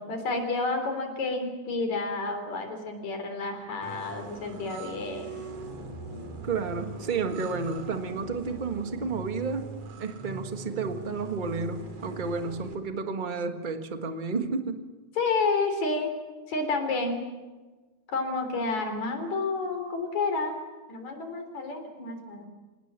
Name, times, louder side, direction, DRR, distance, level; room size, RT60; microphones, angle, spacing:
voice 1, 0.0-5.3 15.2-16.1 16.5-17.2 18.1-20.5 20.9-22.5, left 3 dB, 70° left, 6 dB, 4.8 m, -30 dB
sound 1, 3.5-8.5, left 3 dB, 85° left, 4.6 m, -47 dB
sound 2, 3.8-12.7, right 4 dB, 60° right, 3.5 m, -42 dB
voice 2, 6.4-9.7 10.0-14.8, right 4 dB, 30° right, 7 dB, 0.9 m, -31 dB
26.5 x 18.5 x 7.6 m, 1.3 s
omnidirectional pair, 3.4 m